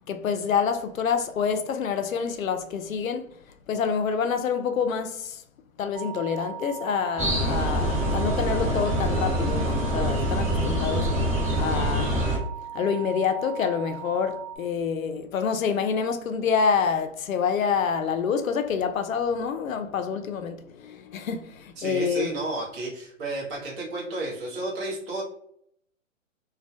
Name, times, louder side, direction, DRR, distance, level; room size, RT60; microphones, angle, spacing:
voice 1, 0.1-3.3 3.7-5.4 5.8-11.1 11.6-12.3 12.7-22.3, left 6 dB, 90° left, 0.5 m, -27 dB
sound 1, 5.9-14.6, right 10 dB, 80° right, 0.6 m, -39 dB
sound 2, 7.2-12.4, equal, 5° right, 1.1 m, -25 dB
voice 2, 21.8-25.2, right 2 dB, 20° right, 0.7 m, -32 dB
2.2 x 2.1 x 2.6 m
hypercardioid pair, 140°, 39 cm